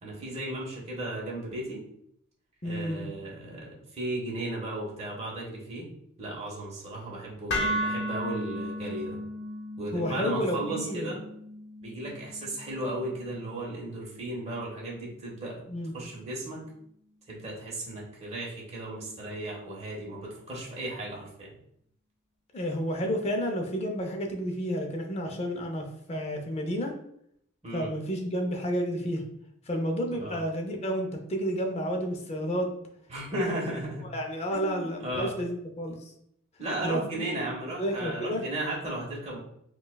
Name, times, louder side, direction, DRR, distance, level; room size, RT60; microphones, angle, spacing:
voice 1, 0.0-1.8 2.6-5.9 6.2-9.2 9.8-11.2 11.8-15.6 15.9-16.6 17.3-21.5 27.6-27.9 30.1-30.4 33.1-34.1 34.5-35.3 36.6-39.4, right 1 dB, 30° right, -4 dB, 1.1 m, -35 dB
voice 2, 2.6-3.1 9.9-11.1 15.7-15.9 22.5-26.9 27.7-29.2 29.7-32.7 34.1-36.1 36.8-37.3 37.7-38.4, equal, 30° left, 3 dB, 0.5 m, -31 dB
sound 1, 7.5-15.6, equal, 55° left, 0.8 m, -36 dB
5.3 x 2.3 x 2.2 m, 0.72 s
head